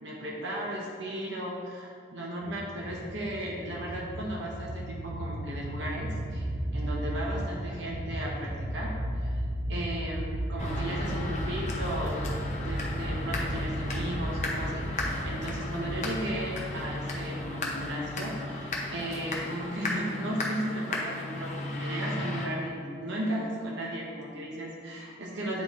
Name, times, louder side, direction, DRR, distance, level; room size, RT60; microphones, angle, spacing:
voice 1, 0.0-9.4 9.7-12.2 12.6-25.6, right 1 dB, 85° right, -3 dB, 0.9 m, -35 dB
sound 1, 2.4-19.4, right 1 dB, 45° right, 0.9 m, -35 dB
sound 2, 10.6-22.4, left 2 dB, 40° left, 0.8 m, -35 dB
9.4 x 4.0 x 3.0 m, 2.2 s
head